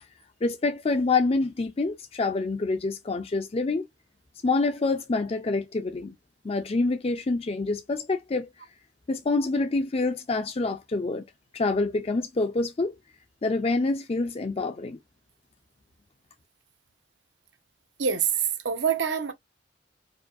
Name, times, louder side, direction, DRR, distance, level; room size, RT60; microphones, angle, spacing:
voice 1, 0.4-3.9 4.4-6.1 6.4-8.5 9.1-11.2 11.5-12.9 13.4-15.0, left 3 dB, 35° left, 0.5 m, -26 dB
voice 2, 18.0-19.3, right 7 dB, 80° right, 1.0 m, -25 dB
4.7 x 2.5 x 2.5 m
head